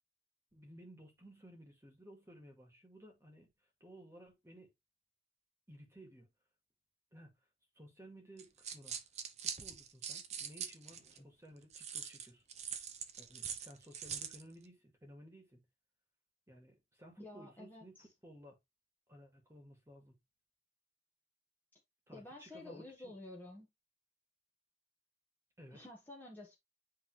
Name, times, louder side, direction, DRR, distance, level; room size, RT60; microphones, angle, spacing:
voice 1, 0.5-3.5 3.8-4.7 5.7-6.3 7.1-7.3 7.8-9.0 9.4-12.4 13.2-15.6 16.5-18.6 19.1-20.2 22.1-23.1 25.6-25.8, equal, 15° right, 2.1 m, -57 dB
sound 1, 8.4-11.2 11.7-14.4, right 7 dB, 35° right, 0.7 m, -43 dB
voice 2, 17.2-18.1 22.1-23.7 25.7-26.6, left 1 dB, 10° left, 1.5 m, -51 dB
8.7 x 3.7 x 3.1 m
head